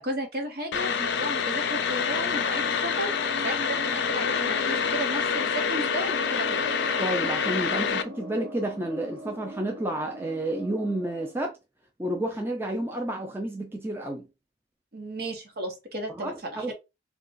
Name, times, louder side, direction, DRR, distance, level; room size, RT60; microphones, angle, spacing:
voice 1, 0.0-6.7 14.9-16.7, right 1 dB, 55° right, 0.9 m, -34 dB
sound 1, 0.7-8.0, left 6 dB, 65° left, 0.4 m, -27 dB
sound 2, 2.3-11.3, left 1 dB, 75° right, 1.1 m, -42 dB
voice 2, 7.0-11.6 12.0-14.3 16.2-16.7, right 1 dB, 10° right, 0.4 m, -30 dB
2.4 x 2.3 x 3.8 m
head